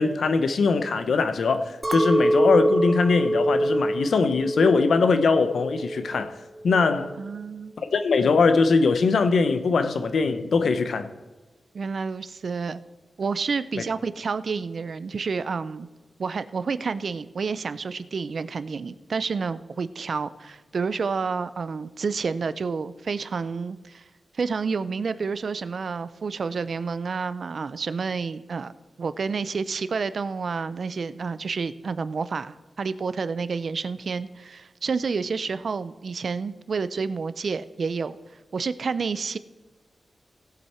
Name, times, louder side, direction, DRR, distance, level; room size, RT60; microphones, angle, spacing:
voice 1, 0.0-6.4 6.6-7.1 7.8-11.1 13.8-13.9, left 4 dB, 80° left, 0.8 m, -21 dB
Chink clink, 1.8-6.2 6.6-7.2, right 1 dB, 25° right, 0.7 m, -25 dB
voice 2, 7.2-7.7 11.7-12.8 13.2-15.9 16.2-24.0 24.3-28.7 29.0-38.2 38.5-39.4, right 5 dB, 65° right, 0.5 m, -29 dB
17.0 x 7.9 x 4.4 m
wide cardioid pair, 90°, 0 cm